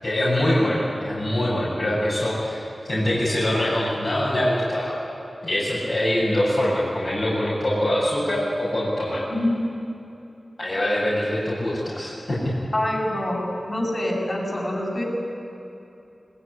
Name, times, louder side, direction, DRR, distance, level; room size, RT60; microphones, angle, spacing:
voice 1, 0.0-5.0 5.4-9.2 10.6-12.5, left 1 dB, 80° left, -8 dB, 7.4 m, -24 dB
voice 2, 9.3-9.7 12.7-15.0, left 1 dB, 55° left, -2 dB, 7.9 m, -25 dB
21.0 x 20.0 x 10.0 m, 2.9 s
cardioid pair, 40°, 0 cm